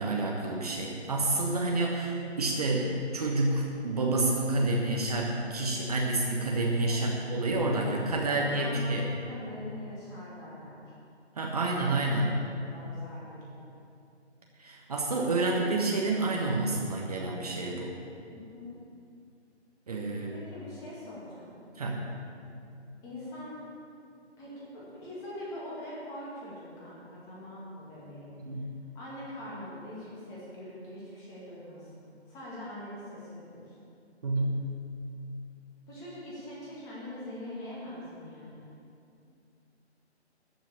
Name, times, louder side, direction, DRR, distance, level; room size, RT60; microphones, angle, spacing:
voice 1, 0.0-9.1 11.4-12.3 14.6-17.9 19.9-20.3 21.8-22.0 28.4-28.7 34.2-34.6, right 2 dB, 35° right, -1 dB, 1.3 m, -29 dB
voice 2, 8.3-10.9 12.3-13.7 18.3-18.7 20.3-21.5 23.0-23.5 24.4-28.3 28.9-33.8 35.9-38.7, left 1 dB, 10° left, -7 dB, 2.0 m, -43 dB
13.5 x 6.2 x 8.7 m, 2.5 s
figure-of-eight pair, 145°, 34 cm